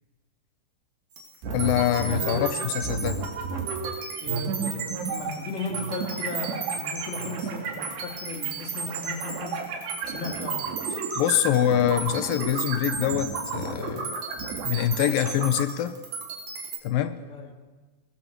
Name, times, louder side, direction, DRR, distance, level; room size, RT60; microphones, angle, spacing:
sound 1, 1.1-16.8, right 6 dB, 55° right, 4.1 m, -36 dB
sound 2, 1.4-15.6, right 5 dB, 90° right, 4.7 m, -33 dB
voice 1, 1.5-3.2 11.2-14.2 14.6-16.0 16.8-17.2, left 11 dB, 75° left, 11 dB, 2.3 m, -24 dB
voice 2, 2.1-2.5 4.2-9.7 10.0-10.6 17.2-17.5, left 3 dB, 20° left, -1 dB, 3.4 m, -36 dB
22.0 x 21.0 x 6.7 m, 1.2 s
omnidirectional pair, 4.7 m